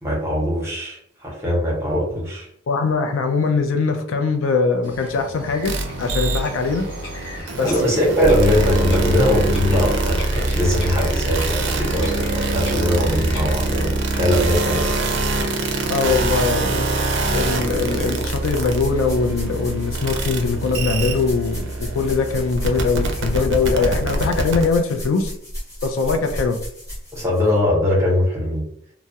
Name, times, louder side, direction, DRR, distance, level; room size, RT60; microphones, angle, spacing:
voice 1, 0.0-2.5 7.6-13.9 14.2-15.0 23.8-23.9 27.1-28.6, left 1 dB, 15° right, -4 dB, 0.8 m, -21 dB
voice 2, 2.7-5.7 6.0-6.8 7.6-7.7 15.9-16.9 17.3-25.3 25.8-26.6, left 4 dB, 80° left, 6 dB, 0.4 m, -21 dB
Bird vocalization bird call bird song, 4.8-18.1, equal, 65° left, 0.8 m, -37 dB
sound 1, 5.6-24.6, right 2 dB, 60° right, 0.4 m, -24 dB
sound 2, 17.4-27.5, equal, 15° left, 0.9 m, -34 dB
2.2 x 2.0 x 2.7 m, 0.67 s
head